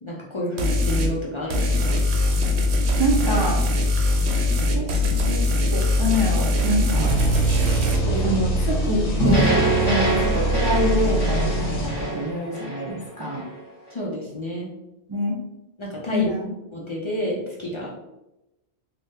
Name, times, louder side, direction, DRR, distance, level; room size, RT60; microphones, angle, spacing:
voice 1, 0.0-2.1 8.0-8.4 9.3-9.4 13.9-14.7 15.8-16.3 16.7-18.0, left 1 dB, 45° left, -4 dB, 0.4 m, -30 dB
sound 1, 0.6-1.1 1.5-8.0, left 1 dB, 90° right, 0.9 m, -21 dB
voice 2, 3.0-3.6 4.7-7.2 8.2-13.4 15.1-15.4 16.1-16.5, equal, 40° right, -4 dB, 0.3 m, -26 dB
sound 2, 6.9-12.4, right 1 dB, 60° left, 0.9 m, -24 dB
sound 3, 9.2-13.5, right 2 dB, 25° left, 1.0 m, -24 dB
3.4 x 2.3 x 2.7 m, 0.94 s
omnidirectional pair, 1.1 m